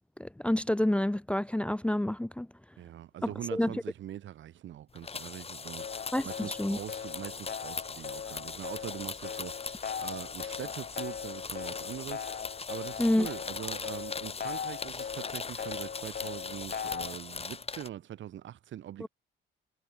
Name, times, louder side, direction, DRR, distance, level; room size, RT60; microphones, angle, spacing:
voice 1, 0.2-2.5 3.2-3.7 6.1-6.8 13.0-13.3 19.0-19.1, left 1 dB, 5° left, 0.6 m, -28 dB
voice 2, 2.8-12.3 12.7-19.1, right 11 dB, 70° right, 3.2 m, -43 dB
sound 1, 5.0-17.9, left 5 dB, 30° left, 1.8 m, -40 dB
sound 2, 5.8-17.1, left 7 dB, 50° left, 4.2 m, -40 dB
cardioid pair, 90°, 20 cm